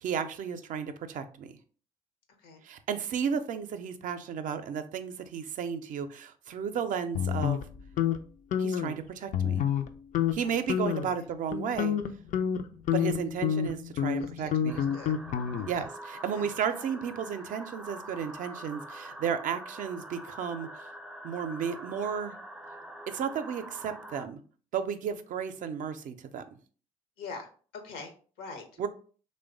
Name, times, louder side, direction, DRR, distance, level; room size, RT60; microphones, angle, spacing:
voice 1, 0.0-1.5 2.6-7.6 8.6-9.6 10.3-12.0 12.9-14.8 15.7-20.9 21.2-22.4 23.1-24.4 24.7-26.4 28.8-28.9, right 7 dB, 55° right, 9 dB, 0.4 m, -33 dB
sound 1, 7.1-8.2 8.5-8.9 9.3-9.9 10.1-10.4 10.7-11.1 11.5-15.9, left 9 dB, 55° left, 0.4 m, -28 dB
voice 2, 14.1-15.1 15.7-15.9 16.3-16.9 27.2-28.9, left 4 dB, 75° left, 5 dB, 0.8 m, -45 dB
sound 2, 14.7-24.3, right 1 dB, 5° right, 0.5 m, -45 dB
3.1 x 2.1 x 3.6 m, 0.41 s
hypercardioid pair, 55°, 16 cm